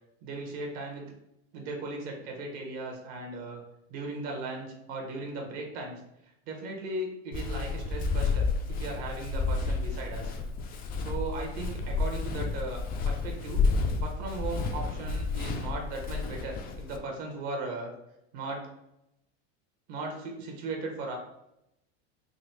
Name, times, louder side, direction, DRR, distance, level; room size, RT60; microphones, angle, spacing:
voice 1, 0.2-1.0 1.5-3.6 3.9-6.0 6.5-10.3 11.0-13.7 14.0-17.9 18.3-18.7 19.9-21.1, right 2 dB, 60° right, 1 dB, 1.2 m, -37 dB
Walk footsteps, 7.3-17.0, left 4 dB, 30° left, 0.4 m, -31 dB
4.0 x 2.8 x 3.1 m, 0.83 s
supercardioid pair, 140°, 32 cm